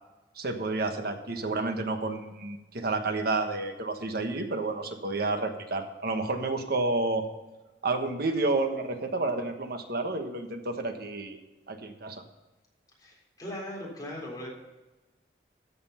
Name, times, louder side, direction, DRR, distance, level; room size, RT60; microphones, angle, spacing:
voice 1, 0.4-7.3 7.8-11.4 11.7-12.2, right 3 dB, 60° right, 6 dB, 1.3 m, -30 dB
voice 2, 13.0-14.5, left 1 dB, 20° left, -3 dB, 3.8 m, -39 dB
13.5 x 7.0 x 5.7 m, 1.1 s
head